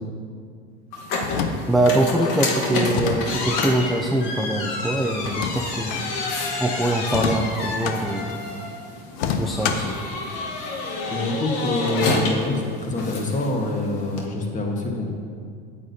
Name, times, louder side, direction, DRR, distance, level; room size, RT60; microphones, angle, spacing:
sound 1, 0.9-14.3, left 2 dB, 65° left, 1.3 m, -29 dB
sound 2, 1.1-2.0 2.9-3.7 5.2-6.0 7.0-8.0 9.1-10.0, left 6 dB, 85° left, 0.7 m, -27 dB
voice 1, 1.7-6.1 6.6-8.6 9.4-10.0, right 1 dB, ahead, 1 dB, 0.3 m, -23 dB
voice 2, 11.1-15.1, left 2 dB, 25° left, 1 dB, 1.3 m, -25 dB
8.6 x 8.3 x 2.7 m, 2.2 s
supercardioid pair, 105°, 30 cm